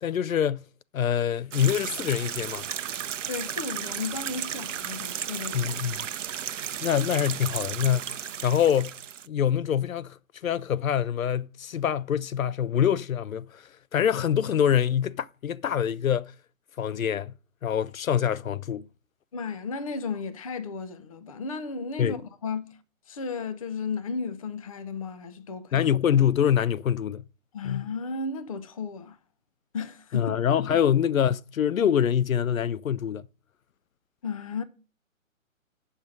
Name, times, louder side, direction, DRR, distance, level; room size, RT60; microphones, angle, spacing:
voice 1, 0.0-0.6 0.9-2.6 5.5-6.1 6.8-9.0 9.3-13.6 13.9-16.3 16.8-17.3 17.6-18.9 22.0-22.2 25.7-27.2 27.6-27.9 30.1-33.3, left 9 dB, 85° left, 0.5 m, -25 dB
sound 1, 1.5-9.3, right 9 dB, 65° right, 0.6 m, -34 dB
voice 2, 3.3-5.7 19.3-22.8 23.1-25.9 27.5-29.2 29.7-30.3 34.2-34.6, left 4 dB, 25° left, 0.5 m, -34 dB
7.9 x 5.7 x 6.1 m
figure-of-eight pair, 140°, 40 cm